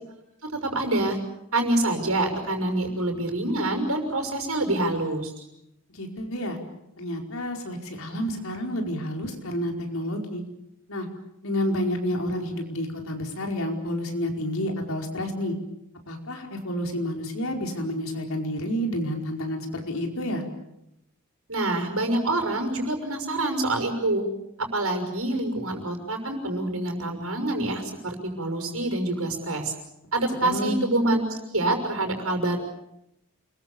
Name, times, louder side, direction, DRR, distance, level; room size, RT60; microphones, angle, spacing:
voice 1, 0.5-1.2 1.5-5.3 21.5-24.2 24.7-29.7 30.1-32.6, right 2 dB, 80° right, 5 dB, 6.2 m, -26 dB
voice 2, 5.9-6.6 7.0-10.4 10.9-11.1 11.4-15.5 16.1-20.4 30.4-30.8, equal, 70° left, 3 dB, 4.9 m, -29 dB
29.0 x 22.5 x 7.1 m, 0.84 s
head